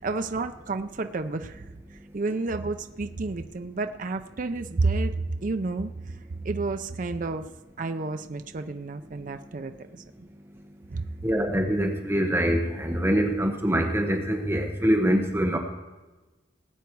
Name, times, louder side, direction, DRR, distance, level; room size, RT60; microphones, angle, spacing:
voice 1, 0.0-6.2 6.4-7.5 7.8-10.0 10.9-11.1, right 3 dB, 45° right, 8 dB, 0.5 m, -30 dB
voice 2, 11.2-15.6, equal, 10° right, 2 dB, 1.1 m, -24 dB
19.0 x 8.2 x 4.6 m, 1.1 s
head